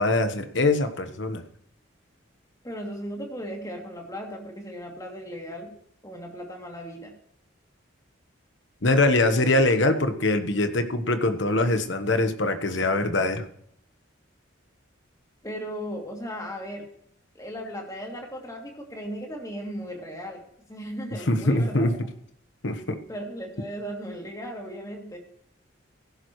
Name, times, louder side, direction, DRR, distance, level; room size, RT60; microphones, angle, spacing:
voice 1, 0.0-1.4 8.8-13.4 21.3-21.9 22.6-23.0, left 2 dB, 60° left, 8 dB, 1.2 m, -23 dB
voice 2, 2.6-5.7 6.0-7.1 15.4-16.8 17.3-20.4 20.7-21.9 23.1-25.2, equal, 15° left, 0 dB, 2.7 m, -36 dB
16.5 x 11.0 x 3.2 m, 0.69 s
head